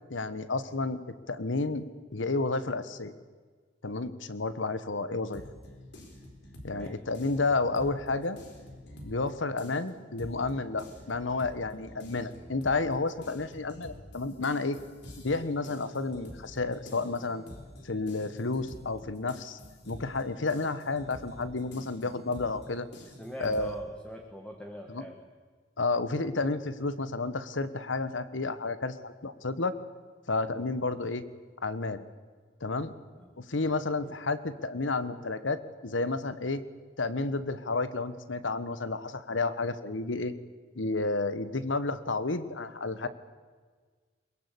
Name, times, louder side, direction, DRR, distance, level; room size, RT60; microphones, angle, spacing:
voice 1, 0.1-1.0 1.3-1.8 2.1-3.1 3.8-5.4 6.6-8.4 9.0-14.8 15.2-17.4 17.8-19.6 19.9-22.9 23.4-23.7 24.9-25.0 25.8-29.7 30.3-31.2 31.6-32.0 32.6-32.9 33.4-36.6 37.0-40.3 40.7-43.1, left 3 dB, 85° left, 14 dB, 1.3 m, -31 dB
sound 1, 5.3-9.3 9.6-23.7, left 1 dB, 65° left, 4.3 m, -48 dB
voice 2, 6.7-7.0 23.0-25.2 26.2-26.3 33.1-33.3 34.0-34.1, equal, 5° left, 3 dB, 1.7 m, -44 dB
22.0 x 21.5 x 8.4 m, 1.5 s
head